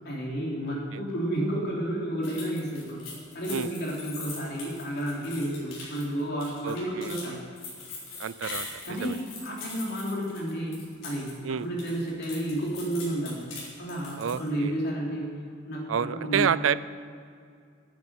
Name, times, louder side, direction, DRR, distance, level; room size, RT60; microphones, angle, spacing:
voice 1, 0.0-3.0 3.3-7.4 8.8-10.8 11.0-13.4 13.8-16.5, right 1 dB, 60° left, -3 dB, 3.3 m, -31 dB
sound 1, 2.2-11.3 11.6-14.5, left 3 dB, 85° left, 4.4 m, -42 dB
voice 2, 6.6-7.2 8.2-9.2 11.4-11.7 14.2-14.7 15.9-16.8, right 7 dB, 85° right, 17 dB, 0.4 m, -29 dB
9.8 x 9.7 x 9.6 m, 2.3 s
head